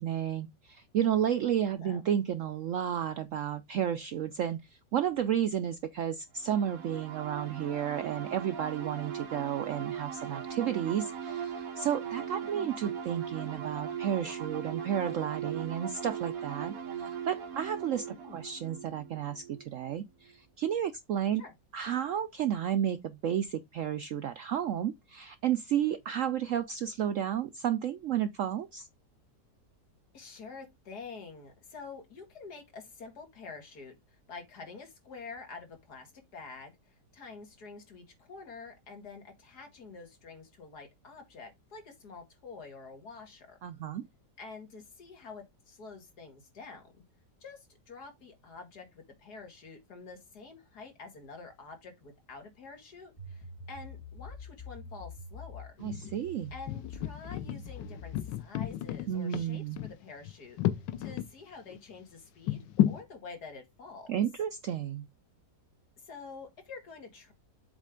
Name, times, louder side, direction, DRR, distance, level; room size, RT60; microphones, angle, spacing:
voice 1, 0.0-4.6 4.9-21.4 21.7-28.9 43.6-44.1 55.8-56.5 59.1-59.8 64.1-65.1, right 9 dB, 70° right, 0.7 m, -32 dB
sound 1, 6.4-19.9, right 7 dB, 55° right, 1.6 m, -39 dB
voice 2, 18.1-18.4 21.4-21.5 30.1-43.6 44.4-46.9 47.4-55.7 56.5-60.6 61.0-64.2 66.0-67.3, left 4 dB, 65° left, 2.4 m, -48 dB
sound 2, 53.2-58.4, left 3 dB, 15° left, 2.2 m, -45 dB
sound 3, 55.8-56.2 56.7-61.3 61.7-61.8 62.5-63.0, left 12 dB, 90° left, 1.4 m, -32 dB
7.5 x 3.3 x 5.0 m
omnidirectional pair, 1.9 m